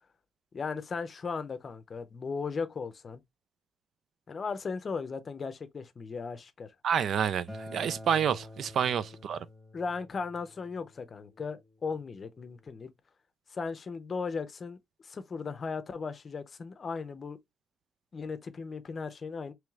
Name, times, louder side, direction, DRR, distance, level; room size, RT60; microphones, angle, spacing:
voice 1, 0.5-3.2 4.3-6.7 9.7-12.9 13.5-14.8 15.0-17.4 18.1-19.5, left 5 dB, 35° left, 0.6 m, -37 dB
voice 2, 6.8-9.4, right 8 dB, 70° right, 0.3 m, -28 dB
Acoustic guitar, 7.5-12.7, left 1 dB, 5° right, 1.4 m, -48 dB
4.8 x 3.1 x 2.3 m
wide cardioid pair, 170°, 0 cm